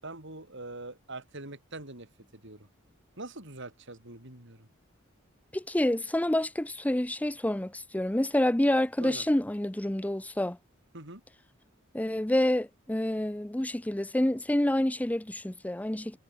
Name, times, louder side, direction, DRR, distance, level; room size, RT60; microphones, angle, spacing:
voice 1, 0.0-2.7 3.2-4.7 9.0-9.3 10.9-11.2, right 2 dB, 65° right, 8.0 m, -43 dB
voice 2, 5.5-10.6 11.9-16.2, left 1 dB, 5° left, 0.6 m, -28 dB
head